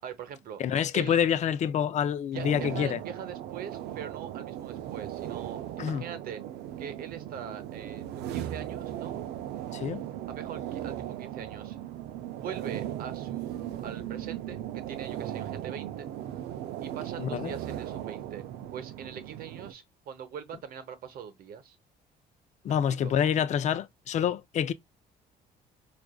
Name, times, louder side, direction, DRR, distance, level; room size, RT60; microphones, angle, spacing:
voice 1, 0.0-0.6 0.9-1.2 2.3-6.4 6.8-9.2 10.3-11.8 12.3-16.1 16.8-18.4 18.7-21.8 22.7-23.1, right 8 dB, 60° right, 0.8 m, -42 dB
voice 2, 0.6-3.0 5.8-6.0 9.7-10.0 17.2-17.5 22.6-24.7, left 8 dB, 45° left, 0.5 m, -27 dB
sound 1, 2.3-19.7, right 11 dB, 80° right, 0.4 m, -37 dB
4.7 x 2.5 x 2.2 m
cardioid pair, 110°, 17 cm